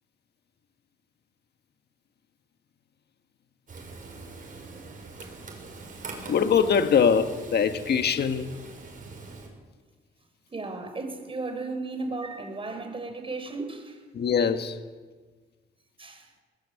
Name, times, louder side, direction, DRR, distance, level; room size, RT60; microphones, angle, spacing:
Frying (food), 3.7-9.5, right 3 dB, 45° right, 6.8 m, -43 dB
voice 1, 6.3-8.5 14.1-14.8, left 7 dB, 55° left, 8 dB, 1.6 m, -22 dB
voice 2, 10.5-14.1 16.0-16.3, right 3 dB, 25° right, 6 dB, 5.1 m, -35 dB
20.0 x 19.0 x 8.7 m, 1.4 s
cardioid pair, 90°, 20 cm